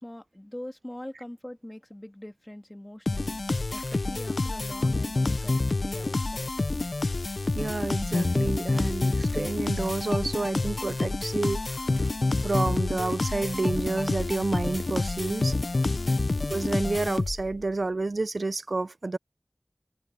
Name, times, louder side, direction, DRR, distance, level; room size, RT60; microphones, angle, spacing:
voice 1, 0.0-3.4 3.7-6.5 15.9-16.3, left 1 dB, 20° left, 2.0 m, -43 dB
sound 1, 3.1-17.6, left 2 dB, 85° left, 0.4 m, -28 dB
sound 2, 3.7-4.1 8.7-9.0 9.3-9.5 9.8-10.1 10.3-10.6 10.9-11.1 11.4-11.7 11.9-12.2 12.5-12.7 13.0-13.3 13.5-13.8, equal, ahead, 2.2 m, -51 dB
voice 2, 7.5-11.9 12.4-15.6 16.5-19.2, right 3 dB, 85° right, 0.4 m, -29 dB
wide cardioid pair, 40°, 0 cm